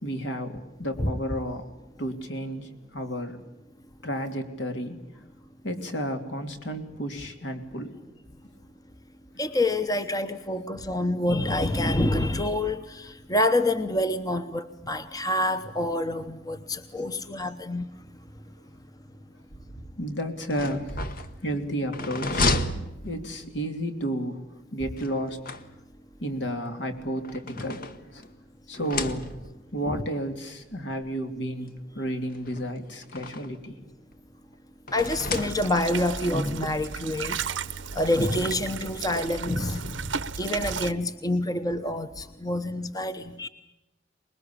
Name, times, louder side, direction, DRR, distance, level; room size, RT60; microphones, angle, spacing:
voice 1, 0.0-1.6 2.0-3.4 4.0-5.0 5.6-7.9 20.0-21.1 21.4-22.6 23.0-24.4 24.7-25.5 26.2-27.8 28.1-28.2 28.7-29.3 29.7-33.8, equal, 70° left, 6 dB, 2.9 m, -32 dB
voice 2, 9.4-17.9 29.9-30.0 34.9-37.4 37.9-43.5, left 1 dB, 20° left, 9 dB, 0.9 m, -27 dB
sound 1, 20.4-23.7 25.0-26.1 27.0-28.4 28.7-29.7 30.6-30.7 31.0-31.1 32.3-33.7 34.9-36.0, left 3 dB, 50° left, 1.3 m, -32 dB
sound 2, 35.0-40.9, right 6 dB, 90° right, 0.9 m, -34 dB
25.0 x 21.0 x 8.6 m, 0.99 s
head